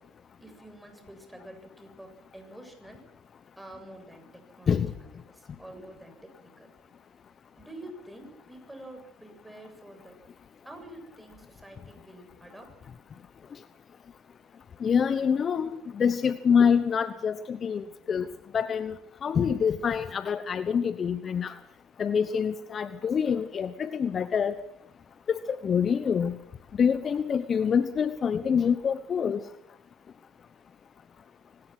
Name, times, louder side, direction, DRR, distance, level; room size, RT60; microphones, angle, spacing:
voice 1, 0.4-3.0 3.6-6.7 7.5-10.2 10.6-12.7, right 1 dB, 5° right, 4 dB, 7.7 m, -47 dB
voice 2, 14.8-15.7 16.0-18.2 18.5-18.9 19.2-21.5 22.0-24.6 25.3-26.3 26.8-29.4, left 7 dB, 40° left, 13 dB, 1.0 m, -26 dB
23.5 x 20.0 x 6.2 m, 0.79 s
hypercardioid pair, 75°, 0 cm